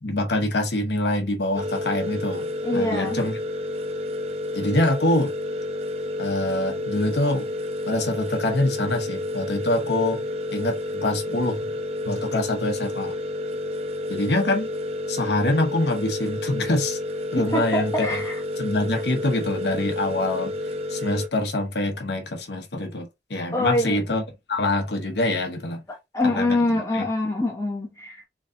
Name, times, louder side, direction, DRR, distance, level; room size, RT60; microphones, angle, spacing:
voice 1, 0.0-3.4 4.5-5.3 6.2-7.5 7.9-10.2 10.5-11.7 12.0-13.1 14.1-14.7 15.1-17.0 17.3-18.2 18.6-20.5 20.9-24.2 24.5-25.8 26.2-27.1, left 1 dB, 70° left, 1.0 m, -25 dB
sound 1, 1.5-21.3, left 1 dB, 35° right, 0.5 m, -30 dB
voice 2, 2.6-3.2 17.5-18.4 23.5-24.0 26.1-28.2, left 1 dB, 15° left, 0.9 m, -24 dB
3.7 x 3.1 x 2.7 m
head